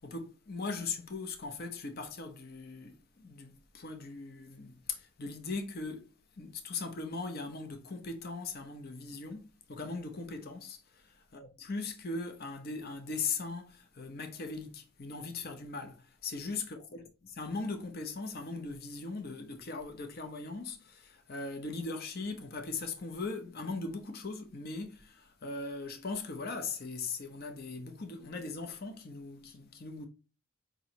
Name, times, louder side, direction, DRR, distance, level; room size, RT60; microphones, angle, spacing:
voice 1, 0.0-11.0 11.3-30.1, left 3 dB, 45° left, 0.7 m, -39 dB
5.0 x 3.0 x 2.8 m
head